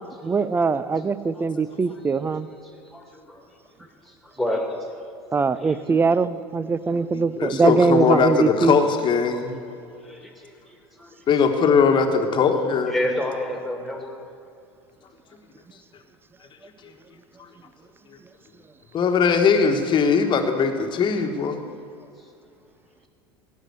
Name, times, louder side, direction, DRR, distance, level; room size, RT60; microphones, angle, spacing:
voice 1, 0.2-2.5 5.3-8.8, right 4 dB, 15° right, 16 dB, 0.5 m, -21 dB
voice 2, 2.9-3.4 4.1-4.8 5.6-5.8 10.0-10.5 11.0-11.1 12.8-14.2, left 1 dB, ahead, 2 dB, 2.3 m, -29 dB
voice 3, 7.1-9.5 11.3-12.9 18.9-21.6, left 5 dB, 35° left, 5 dB, 1.4 m, -20 dB
17.0 x 5.8 x 8.0 m, 2.6 s
hypercardioid pair, 80°, 14 cm